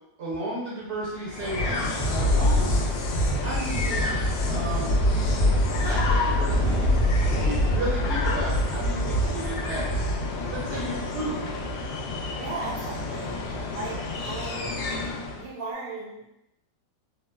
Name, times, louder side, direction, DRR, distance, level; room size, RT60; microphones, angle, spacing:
voice 1, 0.2-1.7 2.0-2.8 3.4-4.1 4.5-5.0 5.6-6.9 7.3-9.8 10.5-11.5, right 1 dB, 55° right, -6 dB, 0.8 m, -33 dB
Thunder, 1.0-11.7, equal, 30° left, 0.8 m, -25 dB
sound 1, 1.3-15.5, left 3 dB, 80° left, 1.2 m, -32 dB
voice 2, 12.4-14.9 15.3-16.3, right 3 dB, 75° right, -3 dB, 1.2 m, -37 dB
3.7 x 2.0 x 2.2 m, 0.85 s
omnidirectional pair, 2.0 m